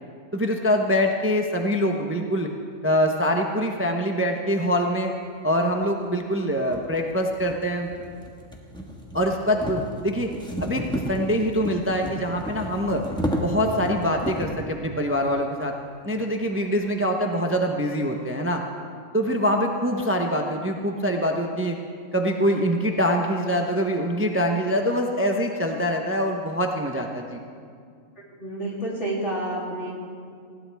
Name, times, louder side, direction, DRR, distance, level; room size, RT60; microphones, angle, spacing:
voice 1, 0.3-2.5 2.8-5.1 5.4-7.9 9.1-10.3 10.6-13.0 13.4-15.7 16.0-18.6 19.1-21.8 22.1-27.4, equal, 10° right, 2 dB, 0.7 m, -24 dB
sound 1, 5.8-5.9 6.6-14.7, equal, 5° left, 1.4 m, -32 dB
voice 2, 28.4-29.9, right 1 dB, 60° left, -5 dB, 3.4 m, -29 dB
20.0 x 16.0 x 3.5 m, 2.2 s
omnidirectional pair, 1.3 m